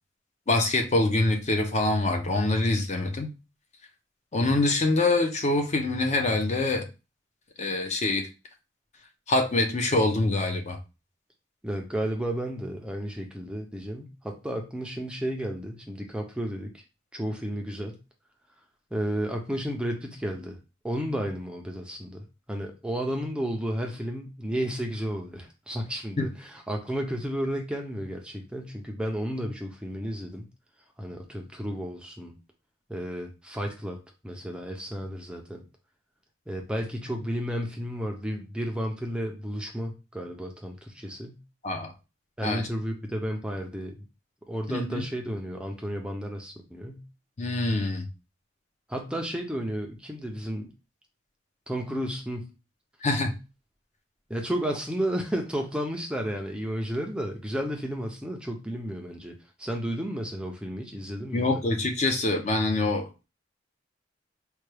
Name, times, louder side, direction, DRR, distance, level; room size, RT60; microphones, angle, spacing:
voice 1, 0.5-3.3 4.3-6.9 7.6-8.3 9.3-10.8 26.2-26.3 41.6-41.9 42.4-42.7 44.7-45.0 47.4-48.1 53.0-53.3 61.3-63.0, left 2 dB, 35° left, 4 dB, 0.6 m, -25 dB
voice 2, 11.6-16.8 17.1-17.9 18.9-20.6 20.8-22.2 22.5-30.5 31.0-32.4 32.9-34.0 34.2-35.6 36.5-41.4 42.4-44.0 44.5-47.0 48.9-50.7 51.7-52.5 54.3-61.5, equal, 5° right, 2 dB, 0.4 m, -32 dB
4.5 x 2.2 x 3.2 m, 0.29 s
head